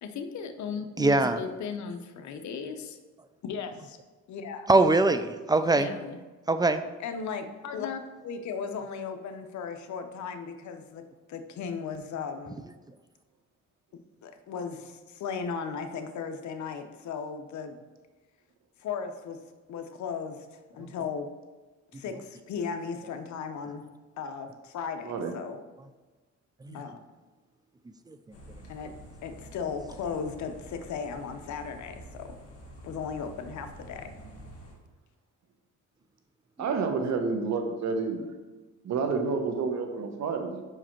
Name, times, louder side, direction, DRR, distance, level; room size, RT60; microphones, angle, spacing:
voice 1, 0.0-3.0 3.4-4.0 4.3-4.7 5.7-6.2 7.0-12.6 14.2-17.8 18.8-19.4 19.7-21.3 21.9-23.8 24.2-25.6 26.7-27.0 28.7-32.3 32.8-34.1, left 6 dB, 70° left, 7 dB, 0.8 m, -36 dB
voice 2, 1.0-1.4 4.7-5.9 6.5-6.8 20.8-20.9 26.6-26.8 28.1-28.2 36.6-36.7, right 2 dB, 15° right, 10 dB, 0.4 m, -23 dB
sound 1, 28.3-34.8, equal, 50° left, 1.7 m, -48 dB
voice 3, 36.6-38.3 38.8-40.7, right 4 dB, 65° right, 5 dB, 1.0 m, -29 dB
5.3 x 4.9 x 4.4 m, 1.3 s
cardioid pair, 90°, 30 cm